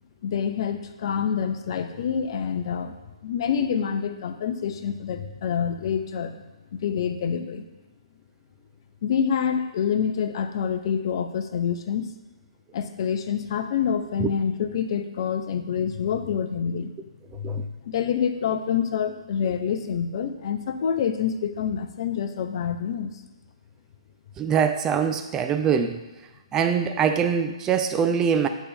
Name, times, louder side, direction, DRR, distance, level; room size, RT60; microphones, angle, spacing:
voice 1, 0.2-2.9 3.2-6.4 6.7-7.6 9.0-12.1 12.7-16.9 17.3-23.2, left 7 dB, 50° left, 8 dB, 0.6 m, -27 dB
voice 2, 24.4-26.0 26.5-28.5, right 7 dB, 15° right, 7 dB, 0.4 m, -23 dB
8.4 x 3.5 x 4.3 m, 1.1 s
hypercardioid pair, 140°, 3 cm